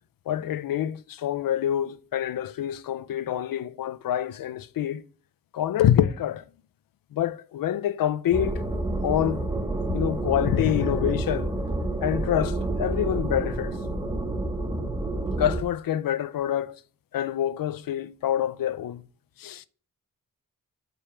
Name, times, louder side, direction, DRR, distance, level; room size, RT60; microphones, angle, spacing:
voice 1, 0.3-5.0 5.5-6.5 7.1-8.6 9.0-9.5 9.9-11.5 12.0-13.8 15.4-16.8 17.1-19.0 19.4-19.7, left 11 dB, 70° left, 0.5 m, -26 dB
sound 1, 8.3-15.6, right 2 dB, 10° right, 0.8 m, -29 dB
5.3 x 4.3 x 4.8 m
wide cardioid pair, 110°, 35 cm